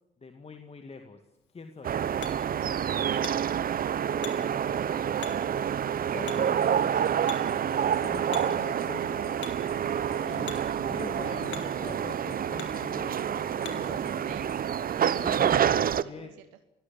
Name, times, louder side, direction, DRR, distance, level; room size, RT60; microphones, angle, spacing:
voice 1, 0.2-1.2 1.5-2.0 4.7-4.8 6.0-7.0 7.7-9.2 10.2-10.5 10.9-13.3 13.6-14.0 15.1-16.3, left 4 dB, 30° left, 6 dB, 2.2 m, -43 dB
Hammer, 1.3-14.0, left 8 dB, 70° left, 3.2 m, -48 dB
sound 1, 1.8-16.0, right 9 dB, 50° right, 0.9 m, -28 dB
voice 2, 3.3-4.0 4.4-5.2 6.9-7.8 9.9-10.8 13.7-14.5 14.9-16.4, right 13 dB, 85° right, 10 dB, 1.2 m, -48 dB
sound 2, 6.5-14.6, left 4 dB, 55° left, 3.3 m, -50 dB
26.0 x 16.0 x 8.8 m, 0.93 s
hypercardioid pair, 60°, 20 cm